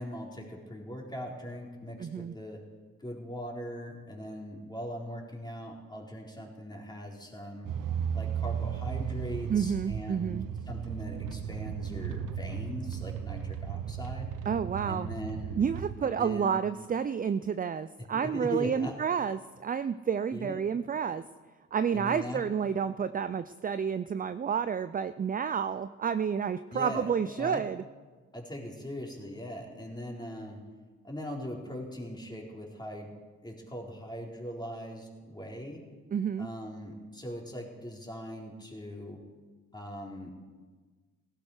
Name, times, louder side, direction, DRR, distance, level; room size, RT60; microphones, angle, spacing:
voice 1, 0.0-2.6 3.0-7.7 8.1-10.3 10.7-14.3 14.8-15.6 16.0-16.6 18.1-19.0 20.3-20.6 21.9-22.4 26.7-27.1 27.4-27.6 28.3-30.6 31.0-33.1 33.4-35.8 36.4-39.2 39.7-40.3, equal, 10° left, -1 dB, 4.0 m, -40 dB
voice 2, 2.0-2.3 9.5-10.5 14.5-15.1 15.6-21.2 21.7-27.8 36.1-36.5, right 7 dB, 25° right, 13 dB, 0.5 m, -30 dB
sound 1, 7.6-15.9, right 8 dB, 70° right, 0.9 m, -35 dB
16.5 x 12.5 x 5.0 m, 1.4 s
supercardioid pair, 55°, 34 cm